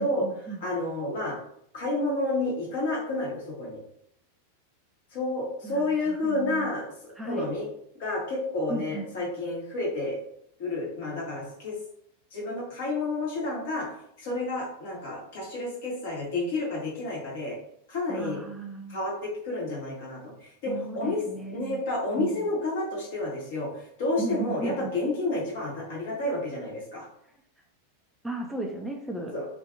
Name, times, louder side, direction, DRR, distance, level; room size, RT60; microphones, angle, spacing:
voice 1, 0.0-0.7 5.6-6.7 7.2-7.5 8.7-9.0 18.1-19.0 20.7-21.8 22.2-22.5 24.2-24.9 28.2-29.3, right 3 dB, 5° right, 0 dB, 0.3 m, -35 dB
voice 2, 0.6-1.4 1.7-3.8 5.1-6.9 7.2-7.7 8.0-10.2 10.6-11.8 12.3-13.9 14.2-17.6 17.9-18.4 18.9-21.2 21.5-27.1 29.3-29.5, left 2 dB, 55° left, -4 dB, 1.1 m, -30 dB
2.5 x 2.4 x 2.5 m, 0.72 s
figure-of-eight pair, 90°, 0 cm